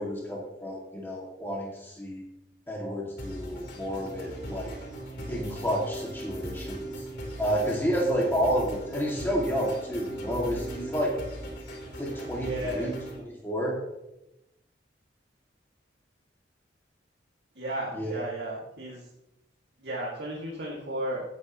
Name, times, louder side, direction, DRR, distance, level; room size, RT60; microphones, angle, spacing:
voice 1, 0.0-2.2 2.7-4.7 5.3-7.0 7.4-11.2 12.0-12.9 13.2-13.8 17.9-18.1, equal, 15° left, -3 dB, 2.4 m, -30 dB
sound 1, 3.2-13.2, right 1 dB, 65° left, 3.9 m, -38 dB
voice 2, 12.4-12.9 17.6-19.0 19.8-21.2, right 1 dB, 65° right, -5 dB, 2.5 m, -34 dB
17.0 x 8.8 x 3.1 m, 0.90 s
head